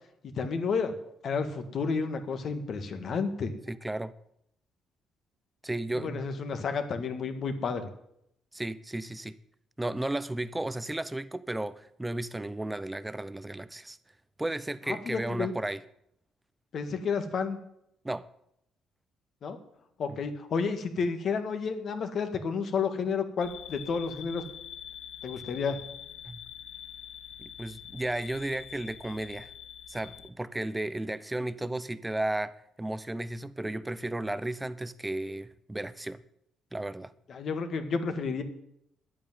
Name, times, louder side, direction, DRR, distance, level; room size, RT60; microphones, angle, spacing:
voice 1, 0.2-0.9 1.2-3.5 5.9-7.9 14.9-15.5 16.7-17.6 19.4-19.6 20.0-24.4 25.2-25.8 37.3-38.4, left 5 dB, 50° left, 1.7 m, -31 dB
voice 2, 3.7-4.1 5.6-6.3 8.5-9.4 9.8-14.0 14.4-15.8 18.0-18.3 20.1-20.2 26.2-26.4 27.4-29.5 29.9-36.2 36.7-37.1, right 1 dB, 10° right, 0.6 m, -34 dB
sound 1, 23.4-30.3, left 9 dB, 75° left, 1.0 m, -45 dB
11.0 x 8.6 x 9.4 m
cardioid pair, 135°, 0 cm